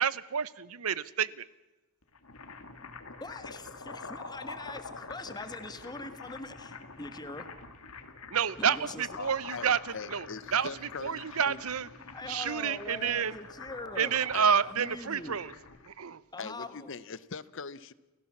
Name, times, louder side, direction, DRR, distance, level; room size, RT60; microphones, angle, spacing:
voice 1, 0.0-1.4 8.3-9.8 10.1-10.3 10.5-10.7 11.0-11.9 12.3-13.3 14.0-15.5 15.9-16.2, right 7 dB, 90° right, 0.8 m, -29 dB
sound 1, 2.0-15.9, left 4 dB, 90° left, 2.2 m, -46 dB
voice 2, 3.2-7.5 8.6-9.1 12.1-14.1 14.4-15.4 16.3-16.9, left 2 dB, 20° left, 1.6 m, -43 dB
voice 3, 9.2-11.6 14.3-14.5 16.4-17.9, left 5 dB, 60° left, 0.8 m, -42 dB
29.5 x 16.0 x 7.3 m
head